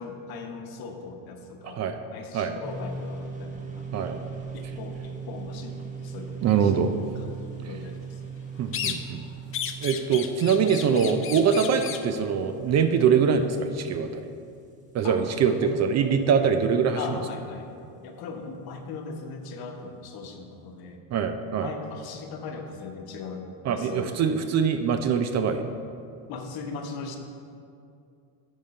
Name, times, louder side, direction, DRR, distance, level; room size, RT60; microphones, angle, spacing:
voice 1, 0.0-3.8 4.5-6.7 7.6-8.0 15.0-15.7 16.9-17.7 18.0-21.0 21.6-24.1 26.3-27.2, left 4 dB, 60° left, 4 dB, 1.1 m, -39 dB
voice 2, 1.6-2.0 2.3-2.6 3.9-4.2 6.4-7.0 8.6-9.2 9.8-14.2 14.9-17.2 21.1-21.7 23.6-25.6, right 6 dB, 40° right, 8 dB, 0.4 m, -23 dB
sound 1, 2.6-16.1, right 5 dB, 20° right, 0.9 m, -40 dB
sound 2, 8.7-9.2 9.5-12.1, left 8 dB, 30° left, 0.4 m, -34 dB
9.8 x 3.8 x 5.3 m, 2.4 s
supercardioid pair, 115°, 43 cm